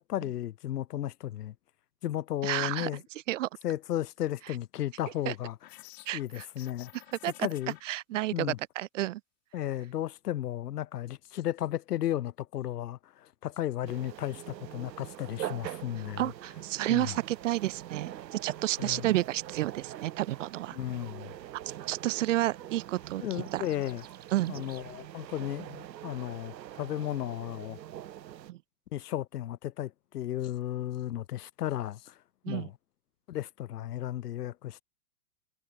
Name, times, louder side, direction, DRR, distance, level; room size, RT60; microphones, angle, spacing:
voice 1, 0.0-1.5 2.0-3.0 3.6-5.6 6.1-6.9 7.4-7.8 8.3-8.6 9.5-16.3 16.9-17.2 18.8-19.1 20.7-21.3 23.2-24.0 24.5-27.8 28.9-32.1 32.5-32.7 33.3-34.8, left 12 dB, 70° left, 1.9 m, -34 dB
voice 2, 2.4-2.9 3.3-3.5 5.2-5.3 6.1-6.5 7.2-7.5 7.8-9.2 16.2-20.8 21.9-23.6 24.3-24.5 28.5-28.6 32.4-32.7, right 15 dB, 50° right, 1.1 m, -31 dB
sound 1, 5.6-7.8, left 19 dB, 40° left, 1.6 m, -51 dB
sound 2, 13.9-28.5, right 12 dB, 85° right, 1.6 m, -44 dB
sound 3, 22.8-24.9, right 13 dB, 20° right, 2.6 m, -55 dB
supercardioid pair, 165°, 49 cm